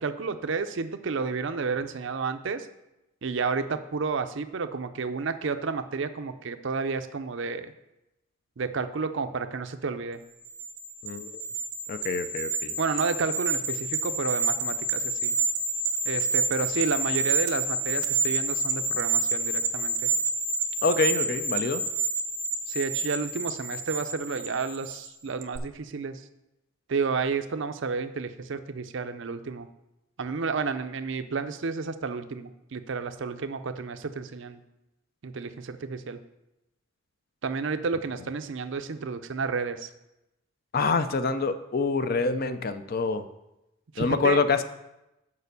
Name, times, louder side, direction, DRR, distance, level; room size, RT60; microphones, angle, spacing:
voice 1, 0.0-2.7 3.2-7.7 8.6-10.2 12.8-15.4 16.1-20.1 22.7-26.2 26.9-29.7 30.2-34.6 35.2-36.2 37.4-39.9 43.9-44.4, right 4 dB, 60° right, 10 dB, 0.5 m, -31 dB
sound 1, 10.4-25.1 25.4-25.6, right 3 dB, 90° right, 0.8 m, -29 dB
voice 2, 11.9-12.7 20.8-21.8 40.7-43.2 44.0-44.6, left 4 dB, 45° left, 11 dB, 0.4 m, -26 dB
6.7 x 5.1 x 6.7 m, 0.92 s
head